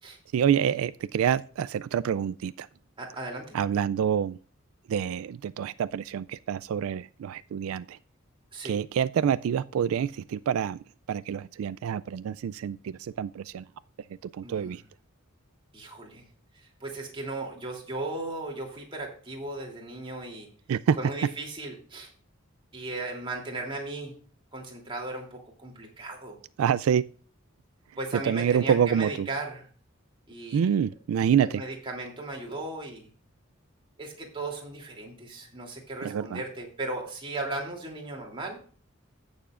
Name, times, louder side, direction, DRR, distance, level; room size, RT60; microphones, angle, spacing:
voice 1, 0.3-2.7 3.5-4.4 4.9-8.0 8.6-10.8 11.1-13.7 14.3-14.8 20.7-21.0 26.6-27.0 28.2-29.3 30.5-31.6 36.0-36.4, right 8 dB, 80° right, 16 dB, 0.3 m, -27 dB
voice 2, 3.0-3.6 8.5-8.7 14.4-14.8 15.7-16.2 16.5-20.5 21.0-22.1 22.7-24.1 24.5-26.4 28.0-29.6 30.3-30.7 31.4-33.1 34.0-38.6, right 2 dB, 25° right, 0 dB, 2.9 m, -36 dB
16.0 x 6.9 x 2.5 m, 0.43 s
head